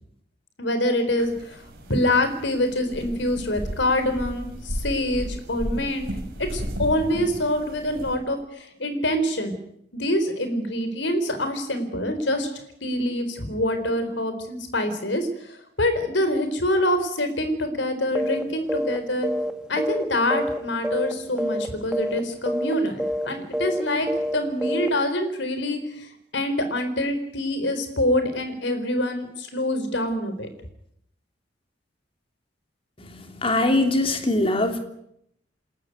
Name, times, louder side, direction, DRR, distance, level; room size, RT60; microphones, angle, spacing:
voice 1, 0.6-6.1 6.4-9.5 9.9-12.5 12.8-19.3 19.7-26.1 26.3-30.5, left 1 dB, 70° left, 8 dB, 4.2 m, -25 dB
sound 1, 1.2-8.2, equal, 55° right, 5.3 m, -34 dB
sound 2, 18.1-18.4 18.7-19.0 19.2-20.6 20.8-21.1 21.4-21.7 21.9-22.2 22.5-22.7 23.0-23.3 23.5-23.8 24.1-24.3 24.6-24.9, equal, 5° right, 1.7 m, -26 dB
voice 2, 33.0-34.8, left 2 dB, 30° left, 5 dB, 3.0 m, -22 dB
28.5 x 14.0 x 9.5 m, 0.77 s
head